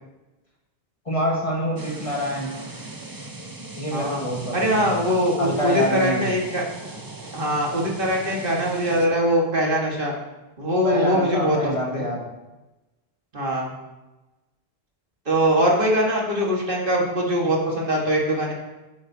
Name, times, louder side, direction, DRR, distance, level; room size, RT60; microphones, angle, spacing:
voice 1, 1.0-2.6 3.8-4.9 5.4-6.3 10.8-12.3, equal, 30° left, -2 dB, 1.4 m, -26 dB
sound 1, 1.8-9.1, right 2 dB, 25° right, 0.7 m, -39 dB
voice 2, 3.9-4.2 4.5-6.6 7.3-10.1 10.6-11.6 11.9-12.0 13.3-13.7 15.3-18.5, equal, 55° right, -2 dB, 1.8 m, -22 dB
9.0 x 8.7 x 2.7 m, 1.0 s
omnidirectional pair, 1.1 m